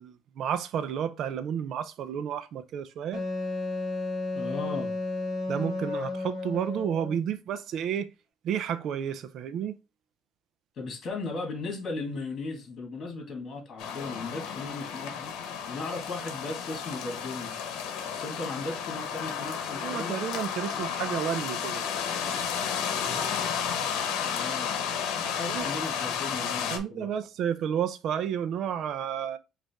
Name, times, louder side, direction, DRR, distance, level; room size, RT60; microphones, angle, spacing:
voice 1, 0.0-3.2 5.5-8.1 8.4-9.7 19.8-21.8 25.5-25.7 26.7-29.4, right 8 dB, 55° right, 0.5 m, -31 dB
Wind instrument woodwind instrument, 3.1-7.2, left 2 dB, 15° left, 2.1 m, -32 dB
voice 2, 4.3-4.9 10.8-15.3 15.7-17.6 18.0-20.2 24.3-24.8 25.2-27.1, left 3 dB, 40° left, 1.9 m, -37 dB
sound 1, 13.8-26.8, left 7 dB, 75° left, 0.9 m, -32 dB
5.1 x 2.6 x 3.4 m
cardioid pair, 135°, 0 cm